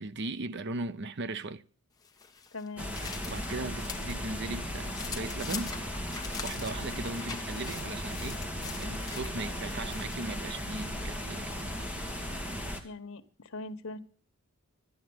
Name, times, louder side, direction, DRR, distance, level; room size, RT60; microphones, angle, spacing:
voice 1, 0.0-1.6 3.3-5.7 6.4-8.4 8.8-11.6, right 3 dB, 55° right, 0.7 m, -38 dB
sound 1, 2.0-4.2 4.6-10.3, left 6 dB, 20° left, 1.2 m, -43 dB
voice 2, 2.5-3.0 12.8-14.0, left 3 dB, 85° left, 1.3 m, -41 dB
sound 2, 2.8-12.8, equal, 5° right, 2.0 m, -36 dB
13.0 x 10.5 x 7.9 m
head